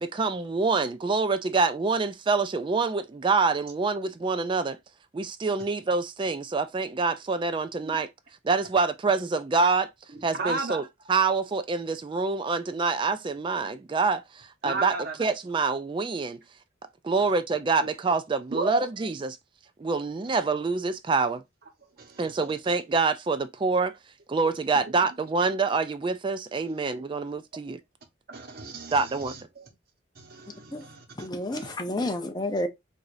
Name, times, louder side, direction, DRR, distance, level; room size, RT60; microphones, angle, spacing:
voice 1, 0.0-4.8 5.1-8.1 8.4-9.9 10.2-16.4 17.0-19.4 19.8-21.4 22.2-23.9 24.3-27.8 28.9-29.3, right 4 dB, 25° right, 0.3 m, -26 dB
voice 2, 10.1-10.8 14.6-15.1 17.8-17.9 18.5-18.9 22.0-22.3 26.7-26.8 28.3-29.7 30.2-31.7, right 2 dB, 50° right, 1.1 m, -34 dB
voice 3, 31.2-32.7, left 1 dB, 20° left, 0.6 m, -30 dB
4.8 x 2.6 x 2.6 m
head